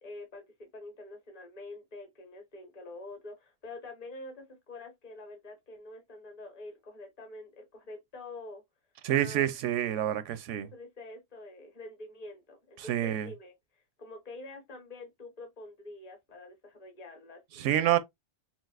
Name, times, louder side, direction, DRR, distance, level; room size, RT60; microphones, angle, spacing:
voice 1, 0.0-8.6 9.1-9.6 10.5-17.7, left 2 dB, 35° left, 1.4 m, -46 dB
voice 2, 9.0-10.7 12.8-13.3 17.6-18.0, right 12 dB, 85° right, 0.9 m, -28 dB
5.8 x 2.6 x 2.4 m
omnidirectional pair, 1.2 m